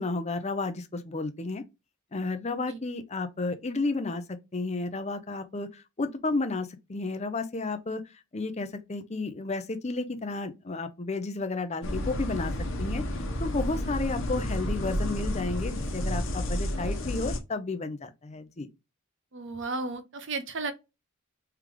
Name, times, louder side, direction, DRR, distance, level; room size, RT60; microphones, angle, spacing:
voice 1, 0.0-1.6 2.1-8.0 8.3-12.5 12.8-18.7, left 3 dB, 30° left, 0.6 m, -32 dB
sound 1, 11.8-17.4, left 1 dB, 55° left, 1.0 m, -31 dB
voice 2, 19.3-20.7, right 3 dB, 55° right, 0.7 m, -34 dB
3.3 x 3.1 x 3.8 m
head